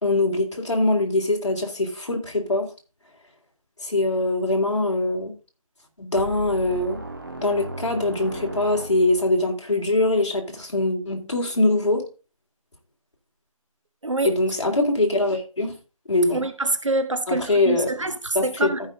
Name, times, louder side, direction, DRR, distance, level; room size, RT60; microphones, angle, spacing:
voice 1, 0.0-2.7 3.8-5.3 6.0-7.0 7.4-12.1 14.2-15.8 16.1-16.4 17.3-17.9 18.3-18.7, left 2 dB, 50° left, 3.2 m, -23 dB
sound 1, 6.2-9.4, right 2 dB, 35° right, 1.5 m, -36 dB
voice 2, 14.0-14.3 16.3-18.8, right 2 dB, 55° right, 1.3 m, -26 dB
14.5 x 5.4 x 3.7 m
figure-of-eight pair, 180°, 18 cm